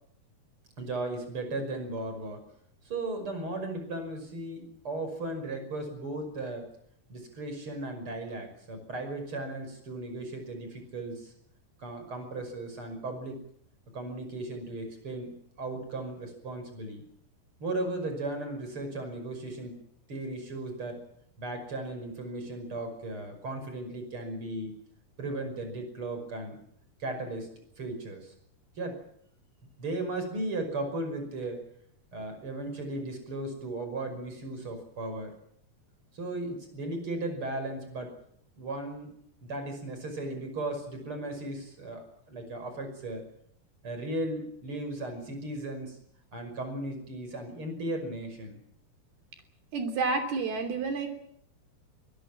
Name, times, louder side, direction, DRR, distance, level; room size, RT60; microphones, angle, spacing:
voice 1, 0.8-2.4 2.8-6.7 7.1-11.3 11.8-13.4 13.9-17.0 17.6-19.8 20.1-21.0 21.4-24.7 25.2-26.6 27.0-28.3 28.8-29.0 29.8-31.6 32.1-35.3 36.1-38.1 38.6-39.1 39.4-43.2 43.8-46.0 46.3-48.6, right 2 dB, 35° right, 7 dB, 6.3 m, -36 dB
voice 2, 49.7-51.1, right 4 dB, 80° right, 5 dB, 5.0 m, -29 dB
23.5 x 21.0 x 7.5 m, 0.71 s
omnidirectional pair, 4.4 m